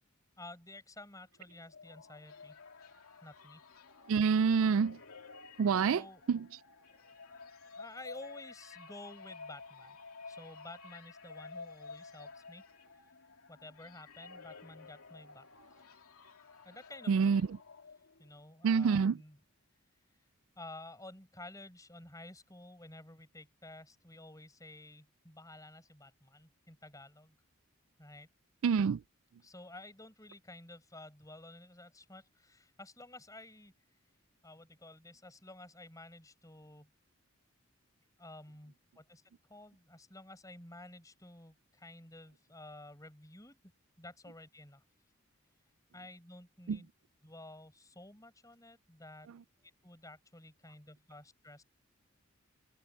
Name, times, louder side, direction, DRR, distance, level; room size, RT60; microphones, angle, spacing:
voice 1, 0.4-2.9 3.2-3.6 5.8-6.4 6.9-10.0 10.2-12.6 13.5-15.8 16.6-17.4 18.2-19.4 20.6-27.4 28.0-28.3 29.4-33.7 34.4-36.9 38.2-43.7 44.0-44.8 45.9-46.9 47.2-49.3 49.5-51.6, left 2 dB, 15° left, 5.9 m, -52 dB
sound 1, 1.4-18.4, left 4 dB, 90° left, 2.8 m, -52 dB
voice 2, 4.1-5.0 5.6-6.0 6.3-6.4 17.1-17.4 18.6-19.2 28.6-29.0 46.7-46.8, right 6 dB, 70° right, 0.3 m, -27 dB
head